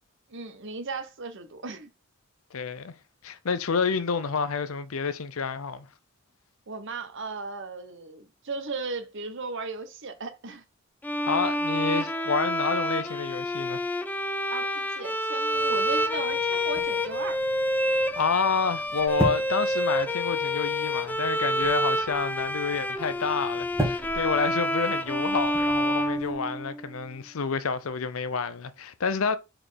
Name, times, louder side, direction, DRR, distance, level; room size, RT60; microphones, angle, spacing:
voice 1, 0.3-1.9 6.7-10.6 14.5-17.4, right 3 dB, 60° right, 1.0 m, -36 dB
voice 2, 2.5-2.9 3.2-5.9 11.3-13.8 17.9-29.4, left 5 dB, 75° left, 0.6 m, -29 dB
Bowed string instrument, 11.0-26.9, left 1 dB, 10° left, 0.4 m, -28 dB
sound 1, 15.5-26.3, right 1 dB, 15° right, 1.6 m, -38 dB
4.4 x 4.2 x 5.0 m
head